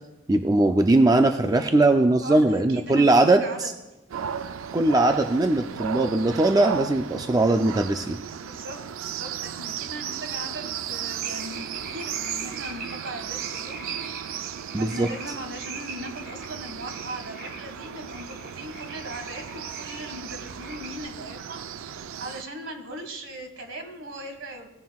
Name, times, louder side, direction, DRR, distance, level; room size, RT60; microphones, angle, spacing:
voice 1, 0.3-3.7 4.7-8.2 14.7-15.1, right 2 dB, 20° right, 6 dB, 0.4 m, -20 dB
voice 2, 2.2-3.7 8.2-13.9 14.7-21.6 22.2-24.7, right 1 dB, 70° right, 5 dB, 1.7 m, -39 dB
sound 1, 4.1-22.4, right 8 dB, 90° right, 0.4 m, -35 dB
sound 2, 11.2-21.0, right 2 dB, 50° right, 2.0 m, -43 dB
17.0 x 9.3 x 2.3 m, 1.0 s
head